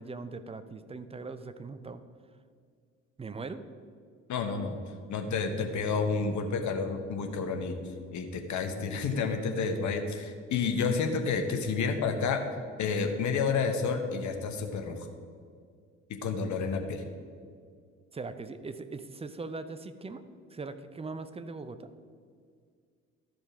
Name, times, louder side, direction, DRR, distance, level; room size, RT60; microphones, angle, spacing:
voice 1, 0.0-2.0 3.2-3.7 18.1-20.2 20.5-21.9, right 3 dB, 15° right, 11 dB, 0.6 m, -40 dB
voice 2, 4.3-4.8 5.1-7.8 8.1-12.4 12.8-15.1 16.2-17.0, left 5 dB, 50° left, 5 dB, 1.1 m, -30 dB
13.0 x 5.2 x 4.9 m, 2.1 s
figure-of-eight pair, 50°, 37 cm